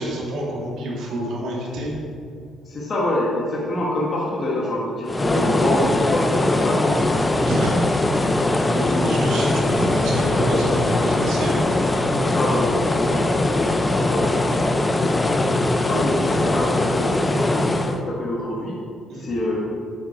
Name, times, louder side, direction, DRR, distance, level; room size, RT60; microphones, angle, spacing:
voice 1, 0.0-1.9 5.3-5.5 7.4-8.1 8.6-11.7 19.1-19.2, right 1 dB, 80° right, -3 dB, 2.2 m, -27 dB
voice 2, 2.6-7.2 8.8-9.0 12.2-14.5 14.8-18.7 19.1-19.7, left 1 dB, 35° left, -4 dB, 1.4 m, -26 dB
sound 1, 5.1-18.0, left 2 dB, 15° left, 0.4 m, -21 dB
sound 2, 8.6-17.1, left 3 dB, 80° left, 1.7 m, -32 dB
8.4 x 6.0 x 4.9 m, 2.3 s
cardioid pair, 155°, 0 cm